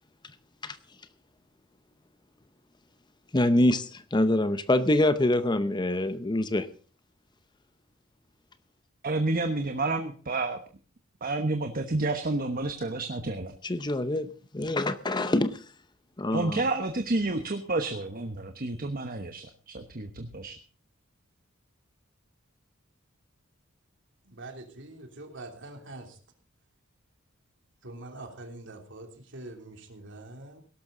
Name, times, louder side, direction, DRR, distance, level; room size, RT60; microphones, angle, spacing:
voice 1, 3.3-6.7 13.6-14.3 14.5-15.6 16.2-16.6, left 1 dB, 20° left, 13 dB, 0.7 m, -25 dB
voice 2, 9.0-10.6 11.2-13.5 16.3-20.6, right 2 dB, 45° right, 7 dB, 1.1 m, -30 dB
voice 3, 24.2-26.2 27.8-30.6, right 2 dB, 60° right, 4 dB, 3.1 m, -44 dB
17.5 x 12.5 x 3.9 m, 0.39 s
head